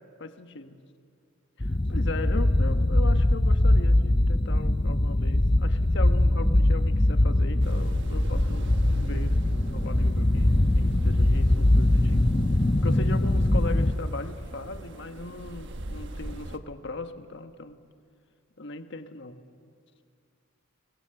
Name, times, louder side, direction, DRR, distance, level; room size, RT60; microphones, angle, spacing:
voice 1, 0.2-0.8 1.6-12.3 12.8-17.8 18.6-19.4, left 3 dB, 55° left, 8 dB, 1.3 m, -38 dB
sound 1, 1.6-13.9, left 1 dB, 25° left, 0.7 m, -22 dB
sound 2, 7.6-16.6, right 1 dB, 60° right, 1.2 m, -39 dB
25.5 x 20.5 x 7.8 m, 2.3 s
head